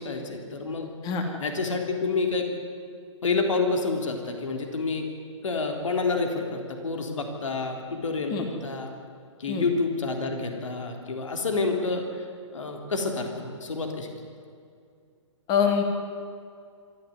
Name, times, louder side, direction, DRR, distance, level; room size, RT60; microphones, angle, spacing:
voice 1, 0.0-1.1 1.4-2.5 3.2-5.1 5.4-8.9 9.4-12.2 12.5-14.1, left 4 dB, 70° left, 3 dB, 3.5 m, -28 dB
voice 2, 15.5-15.8, left 7 dB, 25° left, 4 dB, 2.8 m, -24 dB
25.0 x 14.0 x 9.6 m, 2.3 s
figure-of-eight pair, 125°, 17 cm